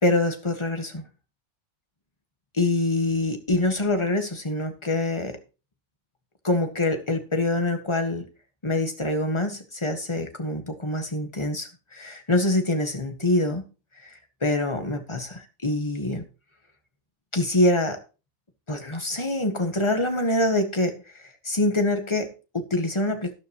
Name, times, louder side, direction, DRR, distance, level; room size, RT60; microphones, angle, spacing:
voice 1, 0.0-1.0 2.6-5.4 6.4-8.3 8.6-13.6 14.0-14.1 14.4-16.2 17.3-18.0 18.7-23.3, left 2 dB, 20° left, 6 dB, 1.6 m, -25 dB
12.5 x 11.0 x 3.0 m, 0.32 s
omnidirectional pair, 1.5 m